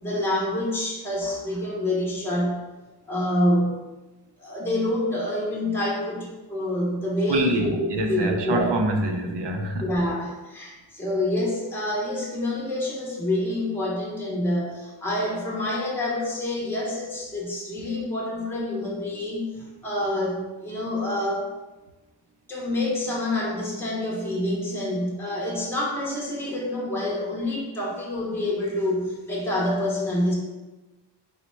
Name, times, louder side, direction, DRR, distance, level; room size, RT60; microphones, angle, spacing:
voice 1, 0.0-2.6 3.1-3.9 4.4-8.7 9.8-21.5 22.5-30.3, left 1 dB, 5° left, -4 dB, 0.7 m, -27 dB
voice 2, 7.3-9.9, right 2 dB, 75° right, 4 dB, 0.6 m, -25 dB
4.1 x 2.1 x 4.3 m, 1.1 s
wide cardioid pair, 130°, 41 cm